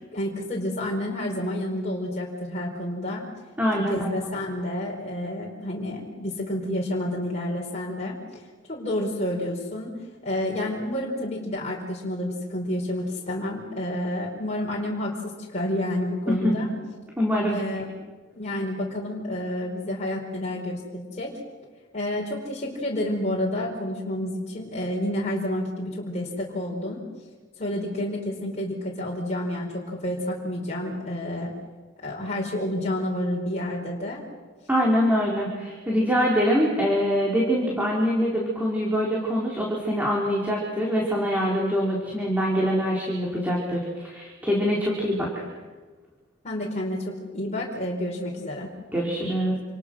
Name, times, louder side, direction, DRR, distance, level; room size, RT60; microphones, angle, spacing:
voice 1, 0.1-3.3 3.8-8.4 8.7-16.7 17.5-17.9 18.3-21.3 21.9-27.0 27.6-31.5 32.0-34.2 46.4-48.7, left 1 dB, 35° left, -2 dB, 4.8 m, -29 dB
voice 2, 3.6-4.1 16.3-16.7 17.2-17.6 34.7-45.4 48.9-49.6, equal, 10° right, -3 dB, 4.7 m, -24 dB
28.5 x 28.5 x 6.5 m, 1.4 s
head